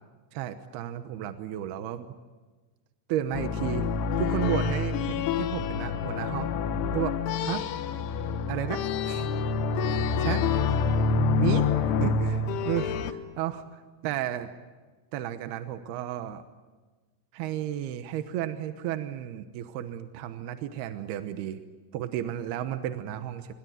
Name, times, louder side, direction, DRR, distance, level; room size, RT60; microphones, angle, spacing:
voice 1, 0.3-2.1 3.1-3.9 4.2-6.5 6.9-7.7 8.5-9.3 10.2-10.5 11.4-11.7 12.0-14.5 15.1-16.4 17.3-21.6 21.9-23.5, right 11 dB, 75° right, 9 dB, 2.5 m, -33 dB
sound 1, 3.3-13.1, left 5 dB, 75° left, 3.5 m, -27 dB
26.5 x 23.0 x 9.3 m, 1.3 s
omnidirectional pair, 5.7 m